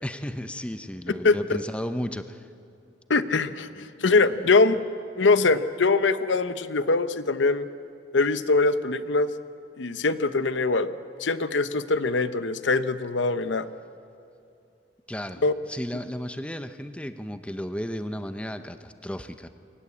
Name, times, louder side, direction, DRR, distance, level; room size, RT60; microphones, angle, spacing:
voice 1, 0.0-2.5 15.1-15.4 15.7-19.5, equal, 5° left, 9 dB, 0.7 m, -34 dB
voice 2, 3.1-4.8 5.2-7.7 8.1-9.3 9.8-10.9 11.2-13.7 15.4-15.5, left 3 dB, 80° left, 13 dB, 0.8 m, -22 dB
23.0 x 18.0 x 8.5 m, 2.7 s
head